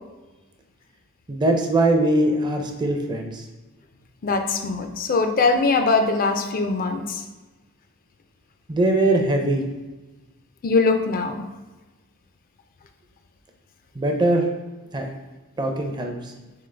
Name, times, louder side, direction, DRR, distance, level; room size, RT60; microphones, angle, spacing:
voice 1, 1.3-3.5 8.7-9.6 13.9-14.5 14.9-15.1 15.6-16.3, right 2 dB, 20° right, 3 dB, 0.4 m, -21 dB
voice 2, 4.2-7.2 10.6-11.5, left 3 dB, 40° left, 6 dB, 0.4 m, -21 dB
3.8 x 3.7 x 3.3 m, 1.2 s
head